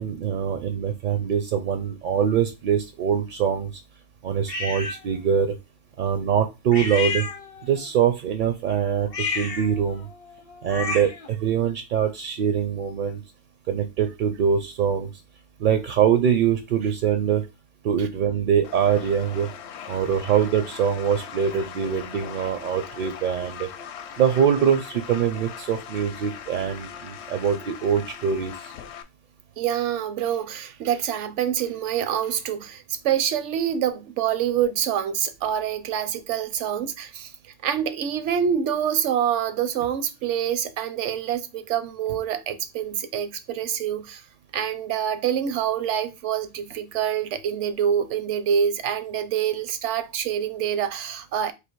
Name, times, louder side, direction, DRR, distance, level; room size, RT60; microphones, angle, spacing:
voice 1, 0.0-3.8 4.2-5.6 6.0-7.3 7.6-10.1 10.6-13.2 13.7-15.1 15.6-17.4 17.8-19.5 19.9-23.7 24.2-28.7, right 8 dB, 60° right, 0.5 m, -23 dB
sound 1, 4.5-5.0 6.7-7.8 9.0-11.3, left 4 dB, 40° left, 0.5 m, -31 dB
sound 2, 18.6-29.0, left 8 dB, 70° left, 0.8 m, -40 dB
voice 2, 29.6-37.3 37.6-44.2 44.5-51.5, right 9 dB, 80° right, 0.9 m, -26 dB
3.4 x 2.6 x 4.5 m
omnidirectional pair, 1.2 m